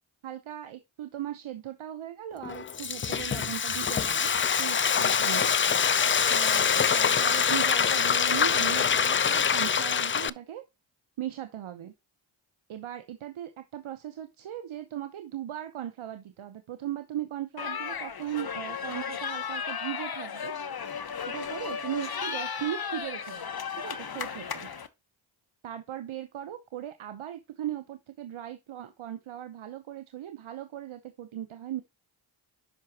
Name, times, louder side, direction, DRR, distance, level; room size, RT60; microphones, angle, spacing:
voice 1, 0.2-4.3 4.6-5.5 6.3-10.6 11.2-11.9 12.7-20.5 21.2-23.5 23.8-24.7 25.6-31.8, right 12 dB, 85° right, 0.9 m, -38 dB
Frying (food), 2.4-10.3, left 7 dB, 30° left, 0.3 m, -25 dB
sound 1, 17.6-24.9, left 7 dB, 50° left, 1.0 m, -35 dB
8.3 x 5.8 x 2.8 m
cardioid pair, 60°, 48 cm